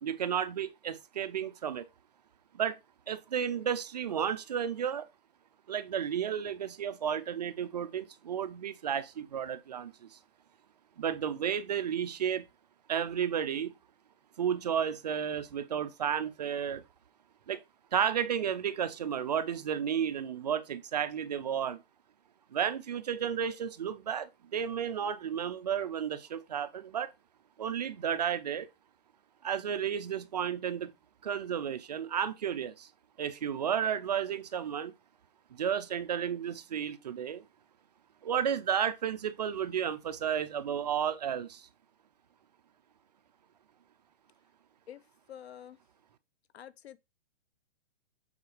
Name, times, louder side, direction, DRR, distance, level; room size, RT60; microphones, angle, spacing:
voice 1, 0.0-1.8 2.5-2.8 3.1-5.1 5.7-10.2 11.0-12.4 12.9-13.7 14.4-16.8 17.5-17.6 17.9-21.8 22.5-27.1 27.6-28.7 29.4-30.9 31.2-32.9 33.2-34.9 35.5-37.4 38.2-41.7, right 8 dB, 45° right, 0.4 m, -32 dB
voice 2, 45.3-45.8 46.5-47.0, left 10 dB, 85° left, 0.7 m, -47 dB
7.2 x 4.3 x 3.2 m
hypercardioid pair, 170°, 31 cm